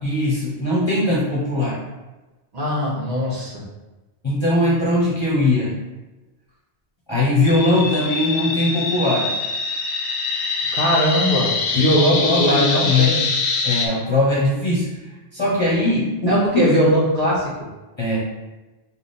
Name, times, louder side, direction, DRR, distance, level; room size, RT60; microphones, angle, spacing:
voice 1, 0.0-1.8 4.2-5.8 7.1-9.3 11.7-13.1 13.6-14.9 15.3-16.7 18.0-18.2, left 2 dB, 30° left, -7 dB, 0.8 m, -20 dB
voice 2, 2.5-3.6 10.7-13.2 16.3-17.5, equal, 40° right, -7 dB, 0.9 m, -20 dB
sound 1, 7.4-13.9, left 4 dB, 85° left, 0.9 m, -24 dB
3.4 x 2.1 x 4.0 m, 1.1 s
omnidirectional pair, 1.1 m